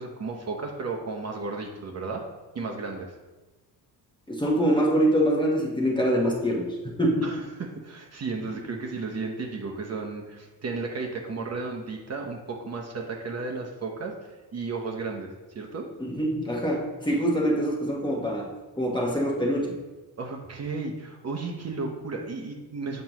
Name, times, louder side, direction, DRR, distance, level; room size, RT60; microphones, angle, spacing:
voice 1, 0.0-2.2 2.5-3.2 7.2-14.1 14.5-15.9 20.2-23.0, right 3 dB, 40° right, 1 dB, 0.8 m, -34 dB
voice 2, 4.3-6.7 7.0-7.2 16.0-18.5 18.8-19.8, equal, 10° left, -1 dB, 1.1 m, -24 dB
7.5 x 5.2 x 3.0 m, 1.2 s
cardioid pair, 115°, 40 cm